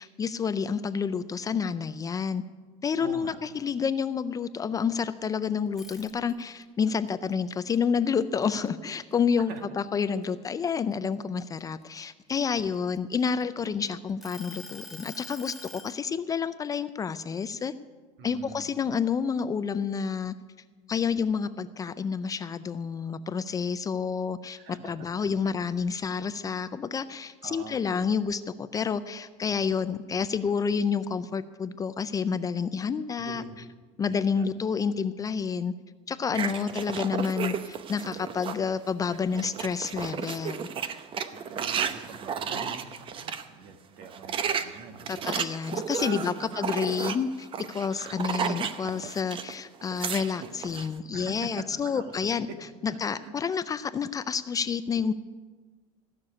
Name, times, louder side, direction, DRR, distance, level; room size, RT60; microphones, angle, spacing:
voice 1, 0.0-2.4 2.8-17.7 18.2-20.3 20.9-33.4 34.0-35.7 36.1-40.7 45.1-52.5 52.8-55.1, left 6 dB, 20° left, 13 dB, 0.4 m, -29 dB
voice 2, 3.0-3.4 9.4-9.6 12.6-12.7 18.2-19.0 24.6-24.9 25.2-25.5 27.4-27.8 33.2-33.6 34.0-34.5 36.3-36.6 41.3-45.3 45.9-46.9 48.1-48.3 50.4-50.5 51.1-52.6 53.2-53.3, right 5 dB, 65° right, 6 dB, 1.8 m, -44 dB
sound 1, 5.7-6.6 7.1-8.9 9.3-9.6 10.0-11.8 12.5-13.7 14.2-16.0, left 1 dB, ahead, 1.4 m, -46 dB
sound 2, 36.3-38.7 39.1-43.4 44.0-49.5 49.8-50.9, right 7 dB, 35° right, 0.8 m, -33 dB
15.5 x 6.7 x 9.7 m, 1.4 s
cardioid pair, 135°, 16 cm